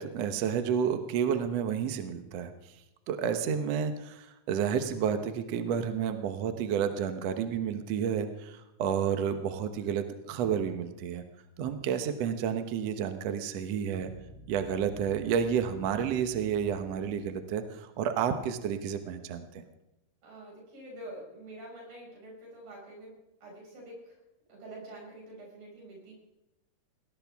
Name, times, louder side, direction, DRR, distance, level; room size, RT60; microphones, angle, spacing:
voice 1, 0.0-2.5 3.1-11.2 11.6-14.1 14.5-19.5, right 8 dB, 65° right, 8 dB, 1.7 m, -30 dB
sound 1, 13.9-17.3, right 1 dB, 45° right, 5.6 m, -51 dB
voice 2, 20.2-23.1 23.4-24.2 24.5-26.1, right 1 dB, 80° right, -2 dB, 7.5 m, -46 dB
19.5 x 18.0 x 3.5 m, 0.92 s
omnidirectional pair, 4.0 m